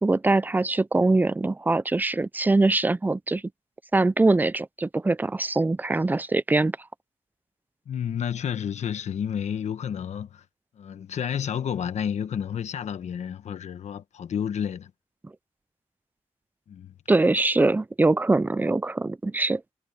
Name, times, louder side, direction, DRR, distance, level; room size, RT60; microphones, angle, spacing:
voice 1, 0.0-3.4 3.9-6.8 17.1-19.6, right 2 dB, 15° right, 0.5 m, -22 dB
voice 2, 7.9-10.4 10.8-14.9 16.7-16.9, left 8 dB, 75° left, 1.2 m, -30 dB
cardioid pair, 85°, 12 cm